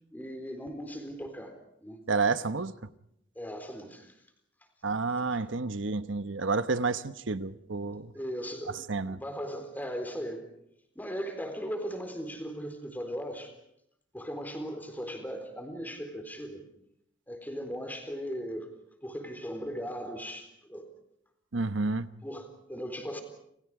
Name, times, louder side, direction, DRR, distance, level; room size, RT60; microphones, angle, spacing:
voice 1, 0.1-2.0 3.4-4.2 8.1-10.5 11.0-13.5 14.1-16.6 17.3-18.7 19.0-20.9 22.2-23.2, equal, 10° left, 3.9 m, -38 dB
voice 2, 2.1-2.7 4.8-8.1 8.9-9.2 21.5-22.1, right 3 dB, 85° right, 1.1 m, -30 dB
30.0 x 28.0 x 4.9 m
head